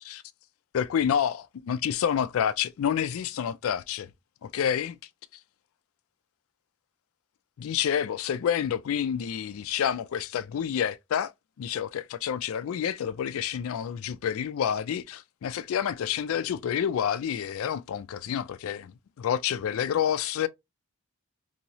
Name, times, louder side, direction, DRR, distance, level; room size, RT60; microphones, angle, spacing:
voice 1, 0.7-4.1 4.4-5.0 7.6-11.3 11.6-20.5, left 8 dB, 65° left, 0.3 m, -28 dB
3.0 x 2.7 x 2.7 m
head